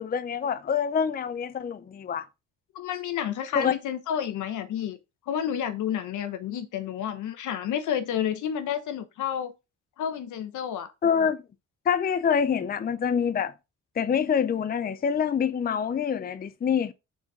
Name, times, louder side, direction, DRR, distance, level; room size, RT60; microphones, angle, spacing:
voice 1, 0.0-2.3 3.5-3.7 11.0-11.4 11.9-13.5 14.0-16.9, left 7 dB, 30° left, 0.6 m, -26 dB
voice 2, 2.7-5.0 5.3-9.5 10.0-10.9, left 9 dB, 75° left, 1.1 m, -30 dB
6.1 x 4.2 x 4.9 m
cardioid pair, 90°, 30 cm